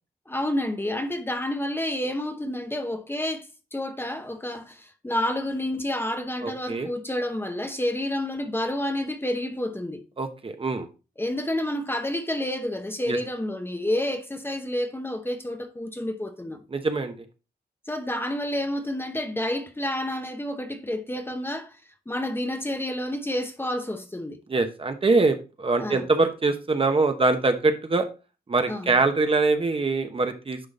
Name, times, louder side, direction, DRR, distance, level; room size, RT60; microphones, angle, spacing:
voice 1, 0.3-10.0 11.2-16.6 17.9-21.8 22.1-24.4 25.8-26.0 28.7-28.9, left 1 dB, 15° left, 0.8 m, -29 dB
voice 2, 6.4-6.9 10.2-10.9 13.1-13.2 16.7-17.1 24.5-28.1 28.5-30.7, right 3 dB, 35° right, 0.9 m, -23 dB
10.0 x 3.8 x 3.9 m
wide cardioid pair, 125°, 16 cm